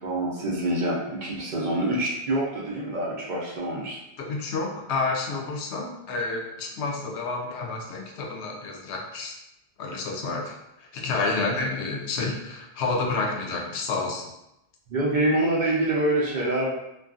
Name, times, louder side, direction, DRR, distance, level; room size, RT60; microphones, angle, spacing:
voice 1, 0.0-4.0 14.9-16.7, right 1 dB, 55° right, -4 dB, 0.6 m, -26 dB
voice 2, 4.2-9.4 9.8-14.2, left 3 dB, 90° left, 1 dB, 0.9 m, -29 dB
2.5 x 2.3 x 2.3 m, 0.87 s
omnidirectional pair, 1.1 m